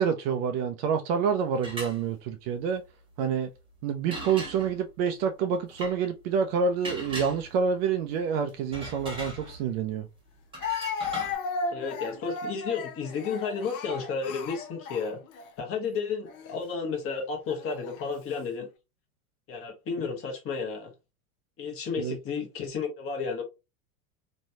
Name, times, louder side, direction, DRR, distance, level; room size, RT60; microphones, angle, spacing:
voice 1, 0.0-2.8 3.2-3.5 3.8-10.1 22.0-22.2, right 6 dB, 45° right, 0.4 m, -27 dB
sound 1, 1.5-2.0 4.1-4.8 5.7-6.0 6.8-7.7 8.5-9.8 10.5-11.4, right 1 dB, 10° right, 1.1 m, -38 dB
Speech, 9.5-9.6 10.6-15.5 16.3-16.5 17.5-18.1, left 4 dB, 65° left, 0.7 m, -35 dB
voice 2, 11.7-15.2 15.6-18.7 19.5-20.9 21.6-23.4, left 5 dB, 30° left, 1.0 m, -32 dB
3.1 x 2.2 x 2.7 m
hypercardioid pair, 100°, 46 cm